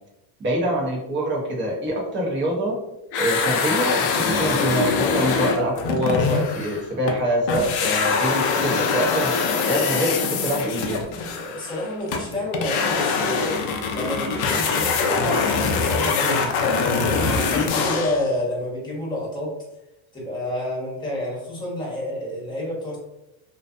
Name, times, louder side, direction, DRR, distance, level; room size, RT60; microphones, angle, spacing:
voice 1, 0.4-2.7 3.1-11.0, right 1 dB, 25° right, -2 dB, 0.7 m, -25 dB
sound 1, 3.1-7.2 7.5-18.3, left 5 dB, 50° left, 0.5 m, -23 dB
voice 2, 11.3-16.6 17.1-19.5 20.1-23.0, left 1 dB, 10° left, -5 dB, 0.9 m, -29 dB
2.6 x 2.3 x 2.4 m, 0.91 s
cardioid pair, 125°, 50 cm